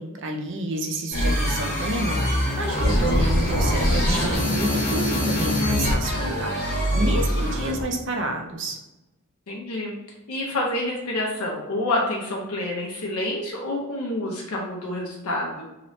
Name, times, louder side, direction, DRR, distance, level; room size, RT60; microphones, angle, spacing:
voice 1, 0.0-8.8, right 1 dB, 55° right, 3 dB, 0.5 m, -29 dB
sound 1, 1.1-7.8, equal, 45° left, 0.9 m, -23 dB
voice 2, 9.5-9.9 10.3-15.6, left 1 dB, 85° left, -2 dB, 0.6 m, -28 dB
3.1 x 2.9 x 2.6 m, 1.0 s
head